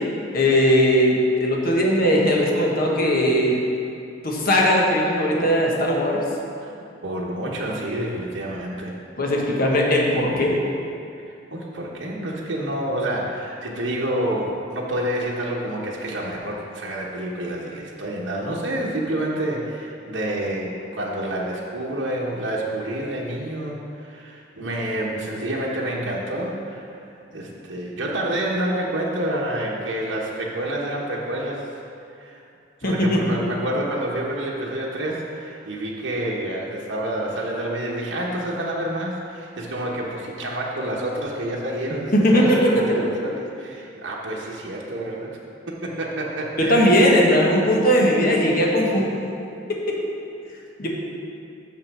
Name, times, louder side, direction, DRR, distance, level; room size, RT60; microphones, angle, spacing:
voice 1, 0.3-3.5 4.2-6.2 9.2-10.6 32.8-33.2 42.1-42.8 46.6-49.1 49.7-50.0 50.8-50.9, equal, 50° left, -2 dB, 1.3 m, -19 dB
voice 2, 7.0-9.0 11.5-31.7 32.2-32.4 32.8-45.4 45.7-47.0, right 1 dB, 75° right, -4 dB, 1.1 m, -28 dB
6.7 x 5.7 x 6.0 m, 2.6 s
head